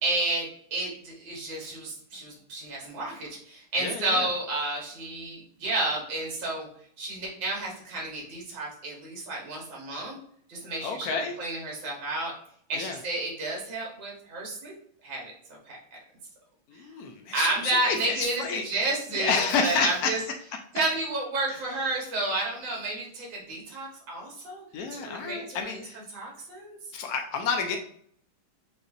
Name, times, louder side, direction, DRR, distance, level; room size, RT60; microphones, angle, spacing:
voice 1, 0.0-0.5 0.7-6.7 7.0-10.2 10.5-11.1 11.4-12.3 12.7-14.7 15.0-15.8 16.7-16.8 17.3-19.3 19.6-20.2 20.7-24.6 24.9-25.6 26.1-26.8, right 2 dB, 65° right, -2 dB, 2.1 m, -31 dB
voice 2, 3.8-4.3 10.8-11.4 12.7-13.0 16.7-18.6 19.1-20.1 21.5-21.6 24.7-26.0 26.9-27.8, left 5 dB, 90° left, 4 dB, 0.8 m, -29 dB
6.5 x 2.5 x 2.6 m, 0.62 s
omnidirectional pair, 2.3 m